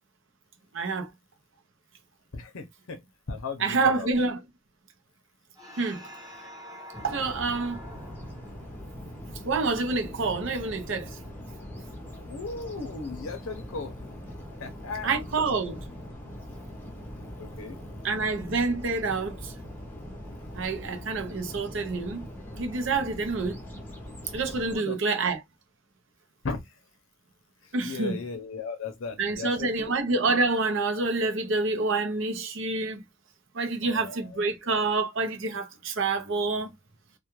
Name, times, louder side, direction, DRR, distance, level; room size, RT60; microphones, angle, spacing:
voice 1, 0.7-1.1 3.6-4.4 5.8-6.1 7.0-7.8 9.4-11.2 15.0-15.8 18.0-19.5 20.5-22.3 22.6-23.6 24.3-25.4 27.7-28.2 29.2-33.0 33.5-36.7, right 3 dB, 60° right, 0.6 m, -27 dB
voice 2, 2.3-3.0 3.3-4.1 12.3-13.9 14.6-15.1 17.2-17.8 24.7-25.0 26.4-26.6 27.8-29.9 33.8-34.2, left 4 dB, 75° left, 0.6 m, -36 dB
sound 1, 5.6-10.3, left 1 dB, 15° right, 0.8 m, -47 dB
sound 2, 6.9-24.8, equal, 10° left, 0.6 m, -41 dB
2.3 x 2.2 x 2.9 m
head